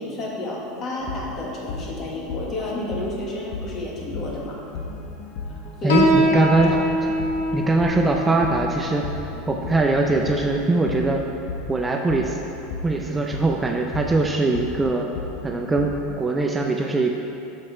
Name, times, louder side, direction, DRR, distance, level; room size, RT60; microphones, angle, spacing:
voice 1, 0.0-4.6 5.5-6.3 6.6-6.8, left 2 dB, 35° left, -2 dB, 1.4 m, -31 dB
sound 1, 1.0-16.2, left 3 dB, 55° left, 0.8 m, -35 dB
voice 2, 5.8-6.7 7.5-9.1 9.5-11.3 11.7-12.4 12.8-15.1 15.4-17.1, right 3 dB, 15° right, 1 dB, 0.4 m, -22 dB
Piano, 5.9-13.0, left 1 dB, 85° left, 1.0 m, -26 dB
6.6 x 4.3 x 5.4 m, 2.9 s
supercardioid pair, 125°, 0 cm